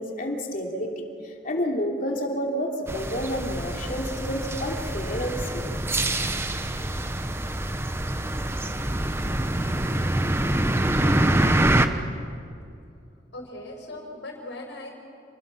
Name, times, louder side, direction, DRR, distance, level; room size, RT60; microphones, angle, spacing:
voice 1, 0.0-5.8, equal, 45° left, 1 dB, 3.1 m, -30 dB
sound 1, 2.9-11.9, right 1 dB, 15° right, 1.0 m, -25 dB
voice 2, 13.3-14.9, left 2 dB, 85° left, 2 dB, 5.1 m, -38 dB
29.0 x 20.0 x 6.0 m, 2.5 s
head